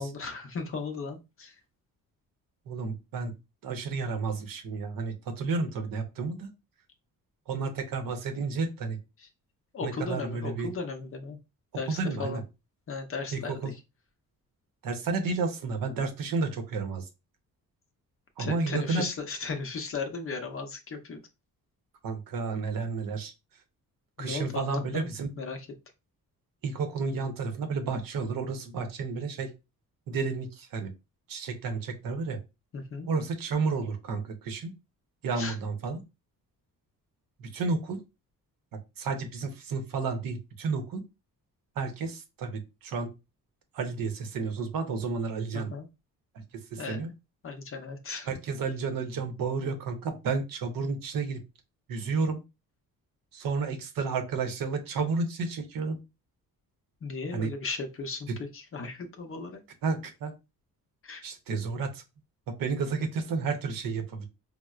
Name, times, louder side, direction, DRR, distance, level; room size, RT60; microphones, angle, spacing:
voice 1, 0.0-1.6 9.2-9.3 9.7-11.4 11.8-12.4 12.9-13.8 18.4-21.2 24.2-25.1 25.4-25.7 32.7-33.1 35.4-35.6 45.5-45.9 46.8-47.1 47.4-48.3 57.0-59.6 61.0-61.2, left 4 dB, 40° left, 5 dB, 0.6 m, -36 dB
voice 2, 2.7-3.4 3.6-6.5 7.5-9.0 9.8-10.7 11.9-12.4 13.3-13.7 14.8-17.1 18.4-19.1 22.0-23.3 24.2-25.3 26.6-29.5 30.1-30.9 31.3-32.4 33.1-34.7 35.2-36.0 37.4-38.0 38.7-41.0 41.8-43.1 43.7-45.7 46.5-47.1 48.3-51.4 51.9-52.4 53.3-56.0 57.3-57.5 58.3-58.4 59.8-60.3 61.2-62.0 62.5-64.3, right 4 dB, 70° right, 7 dB, 0.8 m, -31 dB
4.3 x 2.0 x 2.3 m, 0.26 s
cardioid pair, 135°, 35 cm